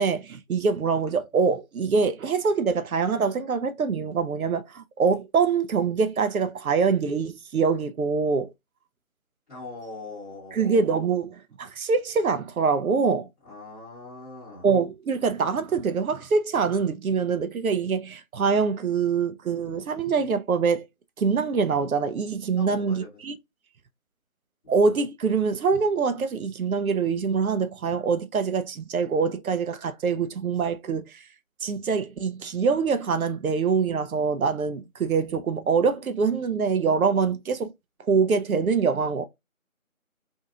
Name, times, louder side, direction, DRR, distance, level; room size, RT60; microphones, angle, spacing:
voice 1, 0.0-8.5 10.5-13.3 14.6-20.9 21.2-23.4 24.7-31.2 31.6-37.7 38.0-39.3, right 5 dB, 80° right, 0.6 m, -24 dB
voice 2, 9.5-10.9 13.4-14.7 22.5-23.2 24.6-24.7, left 2 dB, 5° left, 1.1 m, -41 dB
2.7 x 2.6 x 2.4 m
figure-of-eight pair, 165°, 42 cm